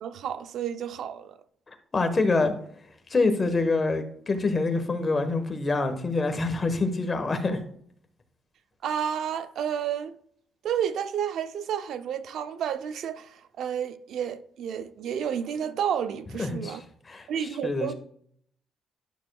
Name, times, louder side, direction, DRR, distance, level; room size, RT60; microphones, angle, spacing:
voice 1, 0.0-1.4 8.8-10.2 10.6-16.8 17.3-17.9, right 8 dB, 75° right, 0.5 m, -31 dB
voice 2, 1.9-2.5 3.1-7.6 16.4-16.8 17.0-17.9, left 3 dB, 30° left, 1.2 m, -26 dB
11.5 x 6.1 x 2.3 m
cardioid pair, 90°, 0 cm